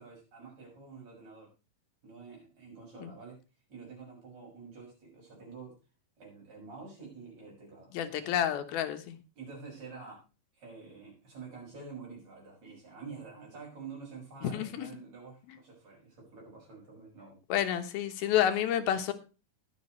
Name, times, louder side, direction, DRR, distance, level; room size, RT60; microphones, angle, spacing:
voice 1, 0.0-1.5 2.0-3.4 3.7-5.7 6.2-8.3 9.4-10.2 10.6-17.4, right 5 dB, 45° right, -3 dB, 7.7 m, -48 dB
voice 2, 7.9-9.2 14.4-14.9 15.5-15.6 17.5-19.1, left 10 dB, 90° left, 7 dB, 3.0 m, -29 dB
20.5 x 7.1 x 3.2 m, 0.32 s
omnidirectional pair, 4.2 m